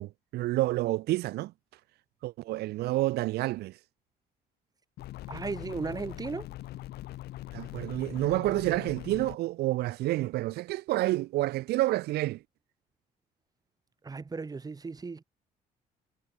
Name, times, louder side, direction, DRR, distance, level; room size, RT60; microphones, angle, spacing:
voice 1, 0.0-1.5 2.2-3.8 7.5-12.4, right 17 dB, 70° right, 0.6 m, -29 dB
sound 1, 5.0-9.4, left 15 dB, 75° left, 1.2 m, -42 dB
voice 2, 5.3-6.5 14.0-15.2, right 4 dB, 20° right, 1.9 m, -36 dB
cardioid pair, 110°, 17 cm